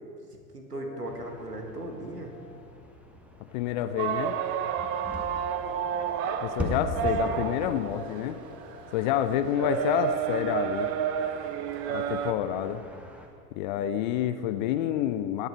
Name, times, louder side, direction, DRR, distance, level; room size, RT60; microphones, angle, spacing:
voice 1, 0.5-2.4 6.9-7.4, right 2 dB, 80° right, 2 dB, 2.0 m, -38 dB
sound 1, 0.7-9.9, left 8 dB, 70° left, 1.1 m, -50 dB
sound 2, 1.0-13.3, equal, 5° right, 1.3 m, -42 dB
voice 2, 3.5-4.4 6.4-8.4 8.9-10.9 11.9-12.8 13.5-15.5, left 10 dB, 30° left, 11 dB, 0.5 m, -28 dB
sound 3, 4.0-12.3, right 8 dB, 30° right, 0.7 m, -31 dB
18.0 x 9.0 x 4.5 m, 2.3 s
figure-of-eight pair, 90°, 46 cm